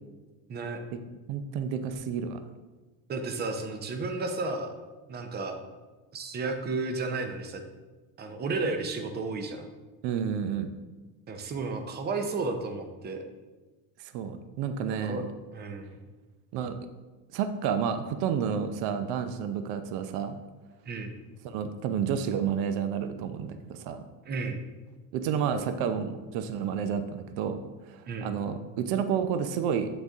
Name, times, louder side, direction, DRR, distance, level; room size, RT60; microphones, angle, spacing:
voice 1, 0.5-0.8 3.1-4.7 5.1-5.6 6.1-7.6 8.2-9.7 11.3-13.2 14.9-15.2 15.5-15.9 20.9-21.1 24.3-24.6 28.1-28.3, right 3 dB, 25° right, 6 dB, 0.6 m, -33 dB
voice 2, 1.3-2.4 10.0-10.7 14.1-15.2 16.5-16.7 17.3-20.4 21.4-24.0 25.1-27.6 27.9-29.9, right 7 dB, 70° right, 9 dB, 0.6 m, -30 dB
7.9 x 4.0 x 3.5 m, 1.2 s
cardioid pair, 145°, 45 cm